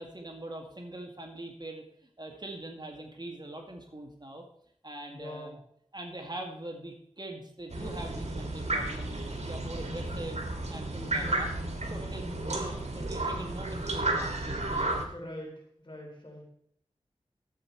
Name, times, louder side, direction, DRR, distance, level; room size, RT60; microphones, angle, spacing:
voice 1, 0.0-1.8 2.2-4.4 4.8-5.6 5.9-11.5 11.9-15.0, right 1 dB, 40° right, 3 dB, 2.0 m, -43 dB
voice 2, 5.1-5.6 11.0-11.5 12.2-12.8 15.1-16.4, left 1 dB, 45° left, -1 dB, 3.9 m, -43 dB
sound 1, 7.7-15.0, right 2 dB, 70° right, 1.8 m, -33 dB
12.0 x 8.0 x 4.6 m, 0.69 s
wide cardioid pair, 45°, 12 cm